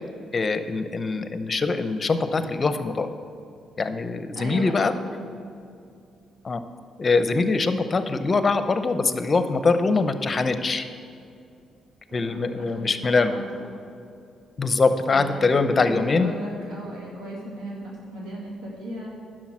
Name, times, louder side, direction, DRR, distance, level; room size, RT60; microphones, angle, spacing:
voice 1, 0.3-3.1 3.8-4.9 6.4-6.6 7.0-10.8 12.1-13.3 14.6-16.3, left 3 dB, 35° left, 10 dB, 0.7 m, -23 dB
voice 2, 4.3-5.4 12.1-13.8 15.1-19.1, right 1 dB, 90° right, -5 dB, 2.3 m, -37 dB
10.5 x 6.3 x 6.1 m, 2.4 s
cardioid pair, 90°, 0 cm